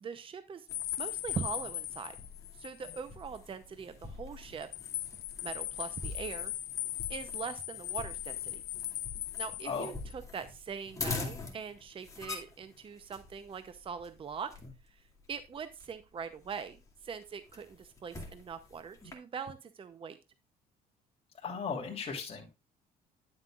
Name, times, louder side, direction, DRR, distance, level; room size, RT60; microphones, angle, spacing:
voice 1, 0.0-0.7 1.0-2.1 2.6-4.7 5.4-6.5 7.1-8.6 9.4-14.5 14.9-15.0 15.3-16.8 17.0-20.2, right 6 dB, 30° right, 10 dB, 0.7 m, -42 dB
sound 1, 0.7-3.0 3.3-3.4 4.4-10.1, left 14 dB, 65° left, 0.8 m, -39 dB
sound 2, 0.7-19.1, left 3 dB, 20° left, 2.5 m, -45 dB
voice 2, 21.4-22.5, left 5 dB, 35° left, -2 dB, 3.1 m, -36 dB
11.0 x 7.7 x 2.4 m, 0.26 s
cardioid pair, 110°, 17 cm